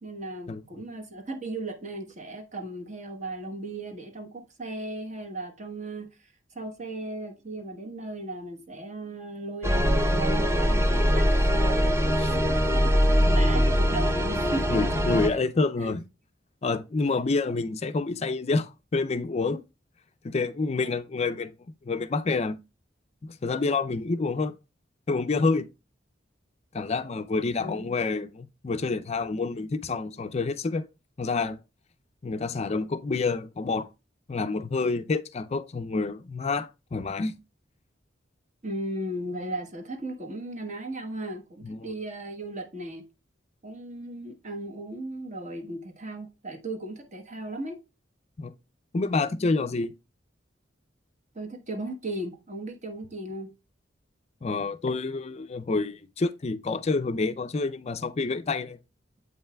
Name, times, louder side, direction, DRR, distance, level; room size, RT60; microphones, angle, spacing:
voice 1, 0.0-6.1 6.5-12.6 12.9-15.4 15.8-15.9 27.6-27.9 38.6-43.0 43.6-47.8 51.3-53.5, right 1 dB, 40° right, 1.2 m, -36 dB
sound 1, 9.6-15.3, equal, 15° right, 0.7 m, -22 dB
voice 2, 14.7-16.0 16.6-19.6 20.2-21.5 21.8-22.6 23.2-24.5 25.1-25.7 26.7-30.9 31.2-31.6 32.2-33.9 34.3-37.3 41.6-41.9 48.4-48.5 48.9-49.9 54.4-58.8, left 3 dB, 35° left, 0.4 m, -28 dB
8.0 x 5.5 x 2.2 m
head